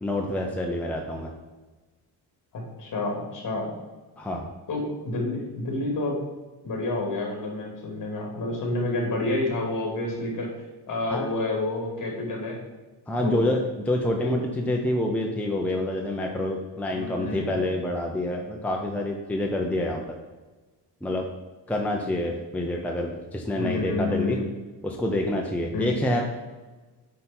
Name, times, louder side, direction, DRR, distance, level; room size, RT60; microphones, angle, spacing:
voice 1, 0.0-1.3 4.2-4.5 11.1-11.3 13.1-20.2 21.0-21.3 21.7-24.4 24.8-26.2, left 1 dB, 5° left, 0 dB, 0.7 m, -27 dB
voice 2, 2.5-3.7 4.7-6.2 6.6-10.5 10.9-12.6 13.2-13.5 14.2-14.5 16.9-17.5 23.5-24.4 25.7-25.9, left 2 dB, 55° left, 0 dB, 2.6 m, -29 dB
8.6 x 5.4 x 4.4 m, 1.2 s
wide cardioid pair, 170°, 39 cm